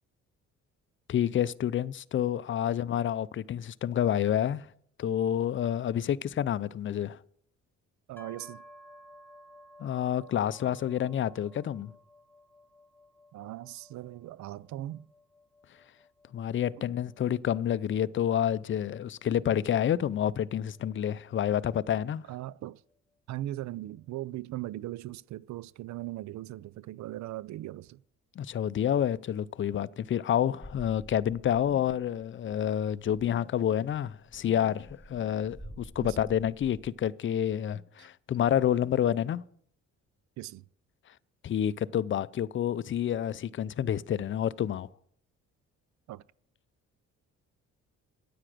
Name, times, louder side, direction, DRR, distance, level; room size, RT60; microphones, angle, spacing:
voice 1, 1.1-4.7 5.0-7.2 9.8-11.9 16.3-22.2 28.4-39.4 41.4-44.9, left 10 dB, 40° left, 0.5 m, -29 dB
voice 2, 8.1-8.6 13.3-15.1 22.3-22.8 23.3-28.0 36.0-36.2 38.0-38.1 40.4-40.6 46.1-46.2, right 15 dB, 70° right, 0.5 m, -39 dB
sound 1, 8.2-21.9, equal, 5° left, 1.0 m, -57 dB
sound 2, 30.6-32.2 32.5-32.6 32.9-33.4 33.9-36.9, equal, 10° right, 3.5 m, -48 dB
9.8 x 8.9 x 6.1 m
cardioid pair, 90°, 30 cm